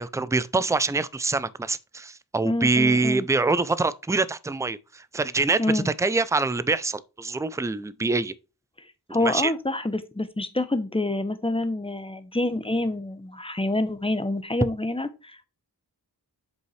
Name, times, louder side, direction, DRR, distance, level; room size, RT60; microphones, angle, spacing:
voice 1, 0.0-8.3 9.2-9.5, right 3 dB, 10° right, 0.4 m, -25 dB
voice 2, 2.4-3.3 5.6-5.9 9.1-15.4, left 2 dB, 15° left, 0.8 m, -27 dB
7.7 x 5.4 x 3.2 m
wide cardioid pair, 50°, 40 cm